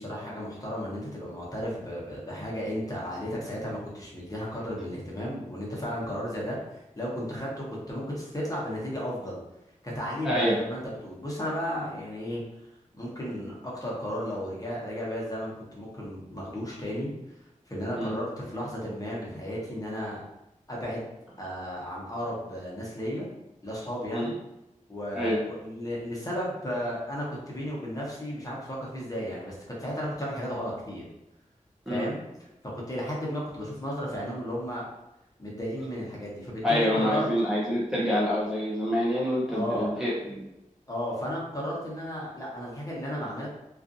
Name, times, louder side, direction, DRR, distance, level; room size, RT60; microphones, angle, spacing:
voice 1, 0.0-9.4 9.8-12.4 12.9-17.1 17.7-20.2 20.7-21.1 21.4-23.3 23.6-24.4 24.9-31.0 31.9-32.2 32.7-34.9 35.4-37.3 39.5-40.0 40.9-43.5, equal, 25° left, -5 dB, 0.9 m, -34 dB
voice 2, 10.2-10.6 18.0-18.1 24.1-24.3 25.1-25.4 31.9-32.1 36.6-40.5, equal, 5° right, -7 dB, 0.6 m, -26 dB
2.5 x 2.5 x 2.5 m, 0.92 s
wide cardioid pair, 80°, 14 cm